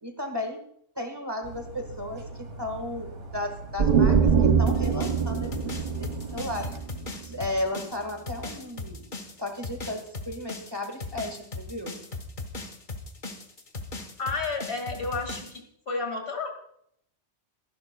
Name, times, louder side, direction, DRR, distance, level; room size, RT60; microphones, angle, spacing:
voice 1, 0.0-0.6 0.9-5.7 6.0-6.7 7.2-9.0 9.4-11.9, left 1 dB, 20° right, 4 dB, 1.4 m, -34 dB
Dog, 1.4-6.8, right 2 dB, 85° right, 2.0 m, -41 dB
sound 1, 3.8-7.4, right 6 dB, 45° right, 0.7 m, -23 dB
sound 2, 4.7-15.6, left 3 dB, 45° left, 1.3 m, -38 dB
voice 2, 14.2-16.5, left 3 dB, 65° left, 3 dB, 2.3 m, -31 dB
24.5 x 11.0 x 2.2 m, 0.71 s
omnidirectional pair, 1.2 m